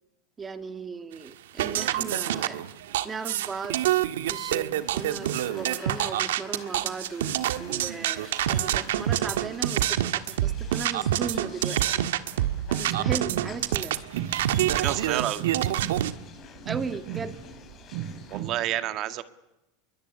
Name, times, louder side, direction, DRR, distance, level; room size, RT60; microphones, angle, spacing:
voice 1, 0.4-2.6 3.0-7.3 7.6-12.0 12.8-14.0 16.7-17.4, right 5 dB, 20° right, 9 dB, 2.5 m, -36 dB
sound 1, 1.6-16.1, right 12 dB, 85° right, 1.6 m, -27 dB
sound 2, 4.7-18.5, left 7 dB, 35° left, 7.4 m, -49 dB
sound 3, 12.3-18.5, right 11 dB, 65° right, 2.9 m, -37 dB
voice 2, 14.6-15.4 18.3-19.2, right 13 dB, 45° right, 11 dB, 1.9 m, -29 dB
26.5 x 22.5 x 9.8 m, 0.95 s
supercardioid pair, 125°, 0 cm